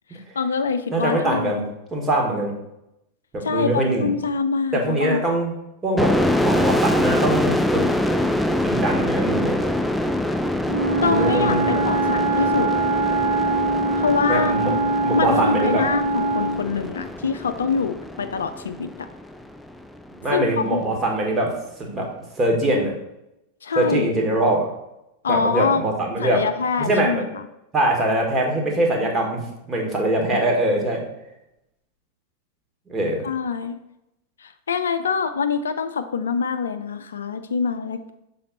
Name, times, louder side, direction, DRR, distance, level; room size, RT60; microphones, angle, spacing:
voice 1, 0.1-1.6 3.4-5.2 11.0-12.7 14.0-14.5 15.1-19.1 20.3-20.9 23.6-24.1 25.2-25.8 26.2-27.4 33.2-33.8 34.4-38.1, left 5 dB, 70° left, 9 dB, 0.4 m, -25 dB
voice 2, 0.9-1.6 1.9-2.5 3.3-4.1 4.7-5.6 5.8-7.8 8.6-9.6 11.0-11.8 14.3-14.8 15.0-15.9 20.2-21.5 21.9-22.1 22.4-22.9 23.7-24.7 25.3-26.4 26.8-27.2 27.7-31.0 32.9-33.2, right 1 dB, 20° right, 0 dB, 1.5 m, -22 dB
sound 1, 6.0-19.4, left 1 dB, 5° left, 0.4 m, -25 dB
Wind instrument woodwind instrument, 10.6-16.7, right 3 dB, 55° right, 1.4 m, -23 dB
6.5 x 4.1 x 4.0 m, 0.86 s
figure-of-eight pair, 90°, 0 cm